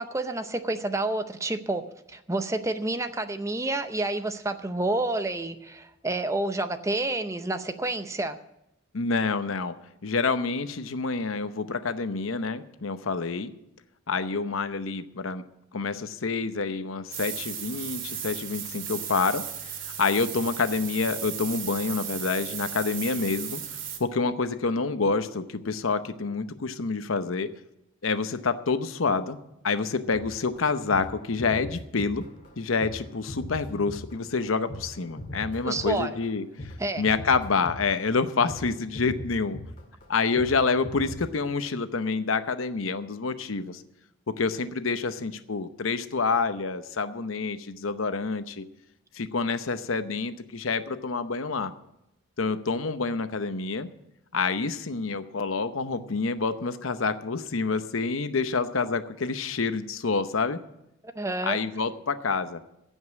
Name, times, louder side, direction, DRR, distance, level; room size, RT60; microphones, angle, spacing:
voice 1, 0.0-1.8 2.1-8.4 35.6-36.1 36.8-37.0 61.2-61.6, right 2 dB, 15° right, 9 dB, 0.6 m, -29 dB
voice 2, 8.9-9.7 10.0-13.5 14.1-15.4 15.7-19.4 19.8-23.6 24.0-27.5 28.0-29.4 29.6-32.3 32.6-39.6 40.1-43.8 44.4-48.6 49.1-51.7 52.4-53.9 54.3-60.6 61.4-62.6, left 4 dB, 85° left, 11 dB, 0.8 m, -27 dB
sound 1, 17.1-24.0, right 8 dB, 75° right, 2.0 m, -36 dB
sound 2, 30.1-36.8 37.0-38.2 38.5-38.7 38.9-40.1 40.4-40.6 40.8-41.3, left 1 dB, 40° left, 2.1 m, -39 dB
16.0 x 5.5 x 9.4 m, 0.85 s
head